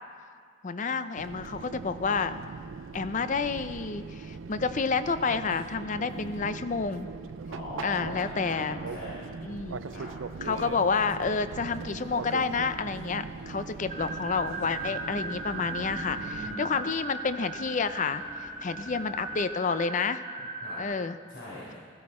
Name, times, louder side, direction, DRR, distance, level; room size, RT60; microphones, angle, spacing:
voice 1, 0.6-2.3 2.9-7.1 7.8-8.8 9.4-9.8 10.4-20.5 20.8-21.2, left 5 dB, 40° left, 12 dB, 0.5 m, -29 dB
Fixed-wing aircraft airplane, 1.2-16.5, right 5 dB, 80° right, 0.5 m, -40 dB
voice 2, 6.0-6.4 7.5-9.2 9.9-10.1 15.6-16.8 20.6-20.8 21.3-21.7, left 1 dB, 65° left, -8 dB, 3.9 m, -41 dB
sound 1, 12.0-19.5, equal, 5° right, 0.9 m, -49 dB
sound 2, 13.9-20.8, right 2 dB, 30° right, 1.3 m, -38 dB
15.5 x 14.5 x 4.3 m, 2.1 s
head